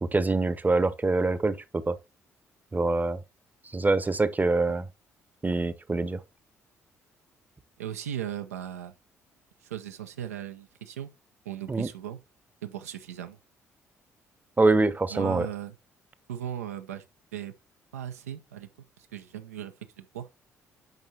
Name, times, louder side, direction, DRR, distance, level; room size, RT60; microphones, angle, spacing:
voice 1, 0.0-2.0 2.7-3.2 3.7-4.9 5.4-6.2 11.7-11.9 14.6-15.5, right 3 dB, 20° right, 0.8 m, -25 dB
voice 2, 7.8-8.9 9.6-11.1 11.5-12.2 12.6-13.4 15.1-15.8 16.3-17.0 17.3-17.5 17.9-18.7 19.0-20.3, right 10 dB, 85° right, 0.6 m, -37 dB
9.1 x 5.4 x 2.8 m
figure-of-eight pair, 45°, 8 cm